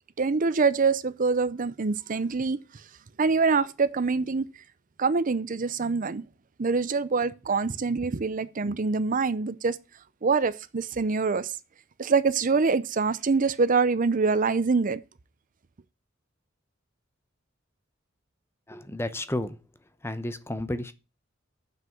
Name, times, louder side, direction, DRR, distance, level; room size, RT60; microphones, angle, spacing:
voice 1, 0.2-2.6 3.2-4.5 5.0-6.2 6.6-9.8 10.2-11.5 12.0-15.0, right 4 dB, 45° right, 0.6 m, -25 dB
voice 2, 18.7-19.6 20.0-20.9, left 1 dB, 15° left, 0.8 m, -32 dB
7.6 x 6.1 x 7.6 m
head